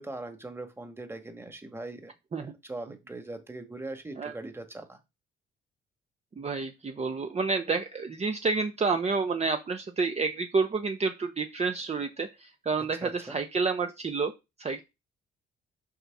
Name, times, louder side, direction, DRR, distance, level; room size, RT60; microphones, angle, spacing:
voice 1, 0.0-2.1 2.4-5.0 12.9-13.4, right 2 dB, 10° right, 6 dB, 1.9 m, -41 dB
voice 2, 6.4-14.3 14.6-14.8, right 4 dB, 35° right, 6 dB, 1.0 m, -29 dB
6.5 x 4.3 x 6.0 m, 0.24 s
cardioid pair, 90°, 20 cm